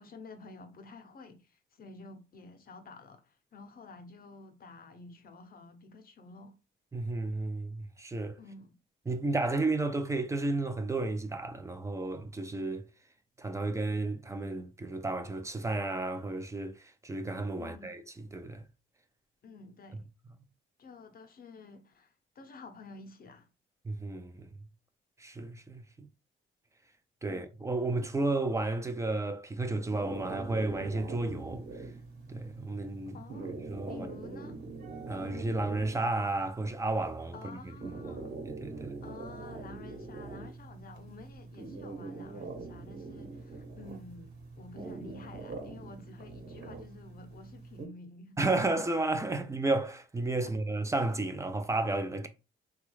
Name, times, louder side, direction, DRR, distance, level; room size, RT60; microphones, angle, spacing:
voice 1, 0.0-6.6 8.4-8.8 17.6-18.0 19.4-20.1 20.8-23.5 27.2-27.4 33.1-33.5 33.9-34.6 37.3-38.4 38.7-48.4 50.4-50.6, left 3 dB, 45° left, 0.7 m, -50 dB
voice 2, 6.9-8.4 9.1-12.9 13.4-18.0 18.3-18.6 23.8-24.5 25.2-26.1 27.2-31.6 32.3-34.1 35.1-37.4 38.0-38.1 38.4-39.0 48.4-52.3, right 2 dB, 15° right, 0.5 m, -32 dB
sound 1, 29.9-47.9, right 3 dB, 50° right, 1.2 m, -44 dB
3.2 x 2.3 x 3.1 m
cardioid pair, 90°, 20 cm